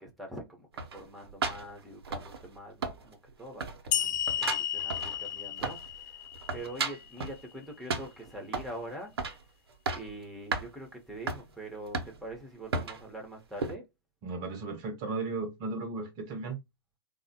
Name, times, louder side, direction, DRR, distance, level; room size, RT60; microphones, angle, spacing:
voice 1, 0.0-6.3 6.5-9.1 9.9-13.9, right 1 dB, ahead, 0.7 m, -44 dB
sound 1, 0.8-2.6 2.8-3.3 3.6-6.0 6.3-7.4 7.9-8.8 9.2-9.4 9.7-10.2 10.5-10.7 11.3-11.4 11.9-12.4 12.7-13.0 13.6-13.8, right 4 dB, 80° right, 0.6 m, -34 dB
sound 2, 3.9-7.3, left 11 dB, 50° left, 0.4 m, -33 dB
voice 2, 14.2-16.6, right 3 dB, 35° right, 0.6 m, -35 dB
3.2 x 2.1 x 2.7 m
hypercardioid pair, 120°, 13 cm